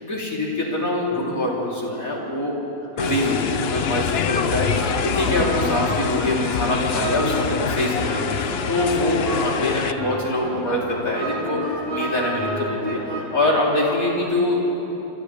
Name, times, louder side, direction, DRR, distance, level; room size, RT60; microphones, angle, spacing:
voice 1, 0.0-2.6 3.0-14.8, left 1 dB, 50° left, -4 dB, 4.1 m, -24 dB
sound 1, 3.0-9.9, left 7 dB, 70° left, 0.5 m, -25 dB
sound 2, 4.4-14.2, equal, 30° right, 6.8 m, -30 dB
29.0 x 26.5 x 3.5 m, 2.8 s
omnidirectional pair, 1.9 m